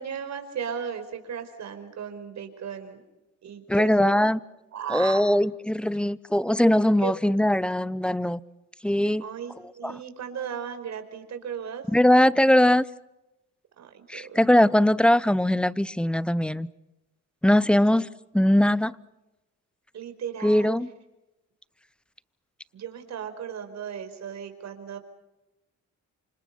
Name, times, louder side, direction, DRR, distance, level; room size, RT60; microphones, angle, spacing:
voice 1, 0.0-3.0 3.4-4.2 4.7-5.2 7.0-7.1 9.2-11.9 13.8-14.7 18.0-18.1 19.9-20.7 22.7-25.0, right 7 dB, 65° right, 4.9 m, -36 dB
voice 2, 3.7-4.4 4.9-8.4 8.8-9.2 9.8-9.9 11.9-12.8 14.1-16.7 17.4-18.1 18.3-19.0 20.4-20.9, left 1 dB, 5° left, 0.8 m, -21 dB
29.0 x 26.0 x 5.7 m
cardioid pair, 90°, 30 cm